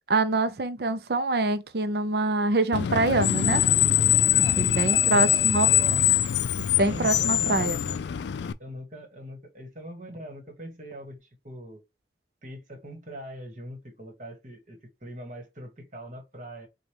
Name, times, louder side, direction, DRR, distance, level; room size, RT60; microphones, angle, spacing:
voice 1, 0.1-3.6 4.4-5.7 6.8-7.8, right 2 dB, 65° right, 0.6 m, -25 dB
Screech, 2.7-8.5, left 11 dB, 80° left, 0.3 m, -23 dB
voice 2, 4.9-6.1 6.7-8.0 8.6-11.8 12.4-16.7, equal, 45° right, 1.5 m, -42 dB
5.2 x 2.3 x 3.0 m
head